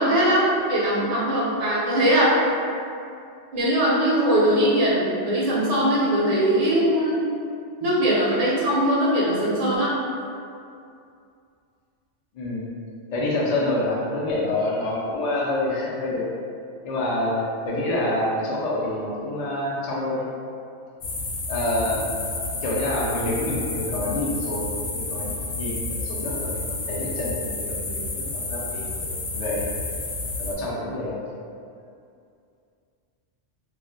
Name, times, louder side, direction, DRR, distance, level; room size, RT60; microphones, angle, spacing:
voice 1, 0.0-2.3 3.5-7.2 7.8-9.9, right 1 dB, 40° right, -7 dB, 0.6 m, -21 dB
voice 2, 12.3-12.7 13.1-16.2 16.8-20.2 21.5-22.1 22.6-29.7 30.4-31.2, left 1 dB, 55° left, -5 dB, 0.4 m, -27 dB
sound 1, 21.0-30.5, left 2 dB, 80° left, 0.9 m, -30 dB
2.4 x 2.1 x 3.8 m, 2.4 s
omnidirectional pair, 1.2 m